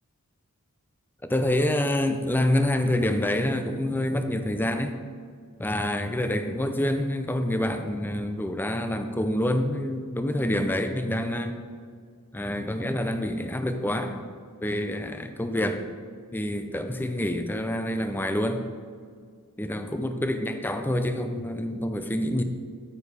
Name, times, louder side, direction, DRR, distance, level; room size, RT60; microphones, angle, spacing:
voice 1, 1.2-4.9 5.6-11.5 12.3-14.2 14.6-15.8 16.3-18.6 19.6-22.4, left 1 dB, 10° left, 7 dB, 0.5 m, -27 dB
9.4 x 9.1 x 3.4 m, 2.1 s
head